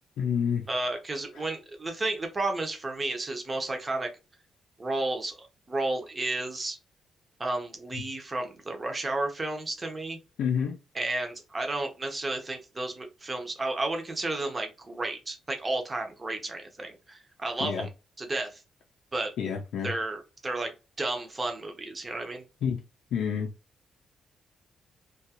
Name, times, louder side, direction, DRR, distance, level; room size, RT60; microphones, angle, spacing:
voice 1, 0.2-0.6 1.3-1.5 10.4-10.8 17.6-17.9 19.4-19.9 22.6-22.8 23.1-23.5, left 7 dB, 80° left, 0.4 m, -28 dB
voice 2, 0.7-4.1 4.8-6.8 7.4-10.2 10.9-17.9 18.2-18.6 19.1-19.3 19.8-22.4, right 2 dB, 20° right, 0.6 m, -32 dB
2.6 x 2.3 x 2.8 m
wide cardioid pair, 165°, 0 cm